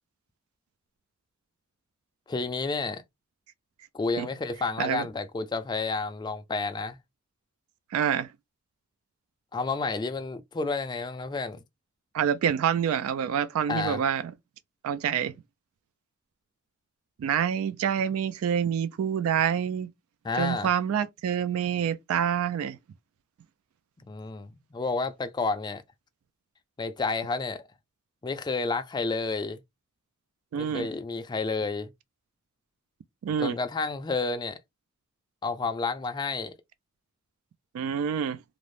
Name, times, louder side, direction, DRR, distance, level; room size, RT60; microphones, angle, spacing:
voice 1, 2.3-3.0 3.9-7.0 9.5-11.6 13.7-14.0 20.2-20.7 24.1-25.8 26.8-27.7 28.2-29.6 30.5-31.9 33.4-34.6 35.4-36.5, left 3 dB, 20° left, 0.3 m, -30 dB
voice 2, 7.9-8.3 12.1-14.3 14.8-15.3 17.2-19.9 20.4-22.8 30.5-30.9 33.2-33.6 37.7-38.4, right 8 dB, 90° right, 0.3 m, -27 dB
2.5 x 2.0 x 3.0 m
head